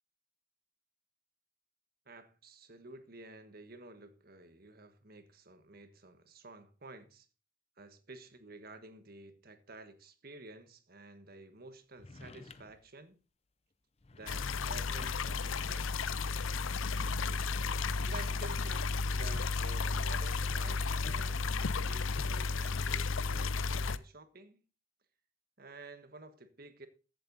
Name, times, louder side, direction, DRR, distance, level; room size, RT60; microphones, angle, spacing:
voice 1, 2.1-7.3 7.8-13.2 14.1-16.1 18.0-21.5 21.8-24.6 25.6-26.9, right 2 dB, 50° right, 1.4 m, -52 dB
sound 1, 12.0-12.9 14.0-15.4, left 3 dB, 30° left, 0.7 m, -52 dB
sound 2, 14.3-24.0, left 4 dB, 75° left, 0.6 m, -33 dB
14.5 x 7.8 x 4.0 m
head